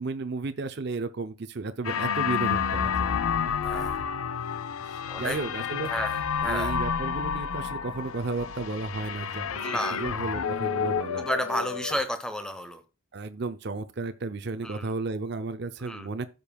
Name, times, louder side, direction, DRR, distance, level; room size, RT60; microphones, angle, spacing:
voice 1, 0.0-3.5 4.8-5.9 6.4-9.6 9.9-11.3 13.1-16.3, right 3 dB, 55° right, 0.5 m, -33 dB
sound 1, 1.8-12.0, left 7 dB, 90° left, 0.5 m, -30 dB
voice 2, 3.6-4.0 5.1-5.4 5.9-6.7 9.6-10.1 11.2-12.8 14.6-14.9 15.8-16.1, equal, 5° left, 0.8 m, -32 dB
15.0 x 5.2 x 2.2 m
head